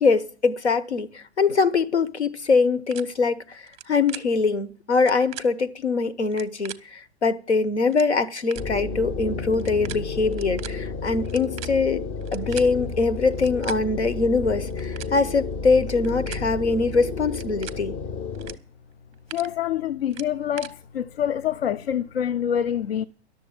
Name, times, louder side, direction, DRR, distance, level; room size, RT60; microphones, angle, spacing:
voice 1, 0.0-12.0 12.3-17.9, left 4 dB, 80° left, 1.1 m, -23 dB
sound 1, 2.9-3.0 3.7-3.8 4.1-4.2 4.9-5.5 6.3-6.8 7.5-7.6 7.9-8.1 8.5-8.6 9.5-10.0 10.3-10.7 11.2-12.7 13.3-13.8 14.6-15.1 15.9-16.4 17.3-17.8 18.3-18.5 18.9-19.5 20.1-20.7, right 12 dB, 20° right, 0.7 m, -38 dB
sound 2, 8.5-18.6, left 4 dB, 25° left, 0.7 m, -32 dB
voice 2, 19.3-23.0, left 9 dB, 65° left, 0.6 m, -26 dB
11.5 x 7.0 x 9.0 m
figure-of-eight pair, 110°, 33 cm